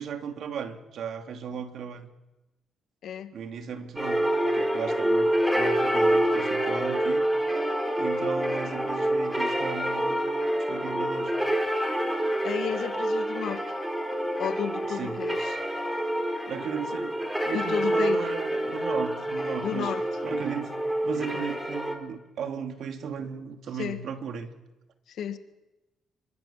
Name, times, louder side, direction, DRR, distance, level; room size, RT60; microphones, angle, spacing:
voice 1, 0.0-2.1 3.3-7.2 8.0-10.3 10.6-11.3 14.9-15.2 16.5-19.9 20.2-20.7 21.0-24.5, right 7 dB, 70° right, 6 dB, 2.8 m, -36 dB
sound 1, 4.0-21.9, right 1 dB, 5° right, 4.3 m, -27 dB
voice 2, 12.4-13.6 14.4-15.6 17.5-18.2 19.6-20.0 23.7-24.0 25.1-25.4, left 9 dB, 70° left, 9 dB, 1.9 m, -32 dB
26.5 x 23.5 x 7.5 m, 1.0 s
cardioid pair, 90°, 0 cm